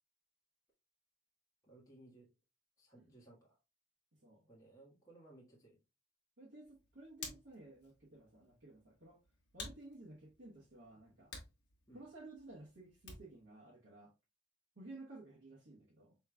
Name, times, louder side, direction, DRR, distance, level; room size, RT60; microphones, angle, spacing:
voice 1, 1.6-2.3 2.8-3.6 4.5-5.8 11.9-12.0, right 2 dB, 15° left, 1.4 m, -60 dB
voice 2, 6.4-9.2 9.5-11.3 11.9-14.1 14.8-16.2, right 2 dB, 60° right, 1.1 m, -55 dB
Hands, 6.6-13.5, left 3 dB, 55° left, 1.6 m, -54 dB
5.8 x 3.1 x 2.3 m
head